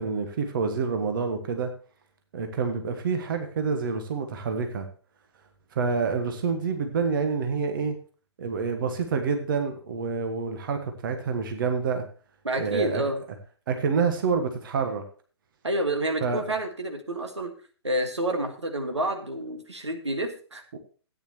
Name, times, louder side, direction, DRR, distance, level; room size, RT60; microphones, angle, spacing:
voice 1, 0.0-1.7 2.3-4.9 5.7-7.9 8.4-12.0 12.6-13.0 13.7-15.0 16.2-16.4 20.7-20.8, right 5 dB, 50° right, 6 dB, 1.5 m, -27 dB
voice 2, 12.4-13.2 15.6-17.5 17.8-20.6, right 1 dB, 80° right, 6 dB, 1.7 m, -29 dB
14.0 x 9.4 x 3.0 m, 0.39 s
figure-of-eight pair, 120°, 15 cm